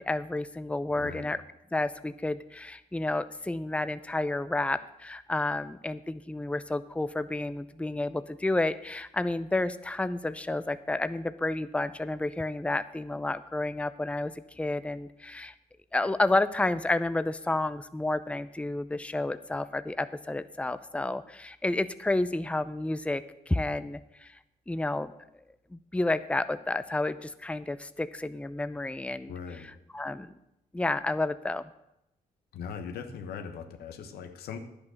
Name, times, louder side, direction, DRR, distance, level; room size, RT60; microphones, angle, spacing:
voice 1, 0.0-1.4 1.7-15.5 15.9-24.4 24.7-25.1 25.7-29.3 29.9-30.3 30.7-31.7, left 2 dB, 10° left, 13 dB, 0.6 m, -30 dB
voice 2, 0.9-1.3 29.3-29.7 32.5-34.6, left 6 dB, 85° left, 7 dB, 1.3 m, -40 dB
10.5 x 8.8 x 6.5 m, 0.84 s
supercardioid pair, 60°, 16 cm